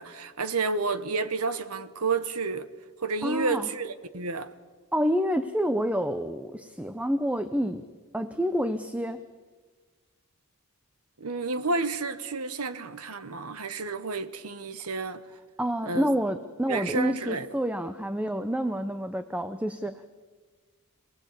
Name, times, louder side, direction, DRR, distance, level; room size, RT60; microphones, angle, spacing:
voice 1, 0.0-2.7 3.0-4.5 11.2-15.2 15.8-16.1 16.7-17.5, right 3 dB, 80° right, 1.4 m, -30 dB
voice 2, 3.2-3.7 4.9-7.8 8.1-9.2 15.6-20.1, equal, 5° right, 0.8 m, -28 dB
27.5 x 18.5 x 8.4 m
head